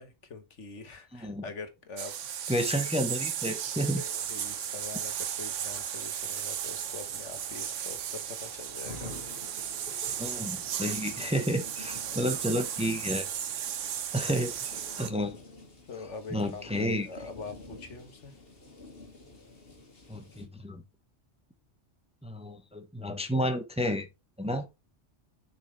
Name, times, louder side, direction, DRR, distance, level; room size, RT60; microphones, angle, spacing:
voice 1, 0.0-2.2 2.5-2.9 4.0-9.2 15.9-18.4, left 4 dB, 70° left, 1.7 m, -44 dB
voice 2, 1.1-1.4 2.5-4.0 10.2-13.3 14.1-15.3 16.3-17.1 20.1-20.8 22.2-24.1 24.4-24.7, equal, 5° right, 0.9 m, -31 dB
sound 1, 2.0-15.1, right 9 dB, 80° right, 1.1 m, -35 dB
sound 2, 3.5-20.5, left 2 dB, 50° left, 2.1 m, -50 dB
7.3 x 5.6 x 3.3 m
omnidirectional pair, 1.3 m